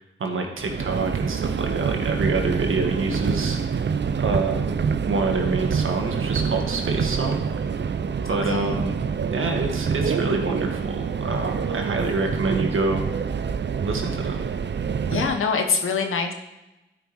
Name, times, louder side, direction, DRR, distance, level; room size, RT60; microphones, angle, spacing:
voice 1, 0.2-3.8 4.2-7.4 8.3-9.0 9.3-13.0 13.8-14.5, right 3 dB, 75° right, 3 dB, 1.6 m, -27 dB
Subway metro underground, 0.6-15.4, right 6 dB, 60° right, 0.6 m, -26 dB
voice 2, 8.3-8.8 15.1-16.3, left 5 dB, 90° left, 5 dB, 1.1 m, -24 dB
12.0 x 5.5 x 4.7 m, 0.96 s
cardioid pair, 40°, 21 cm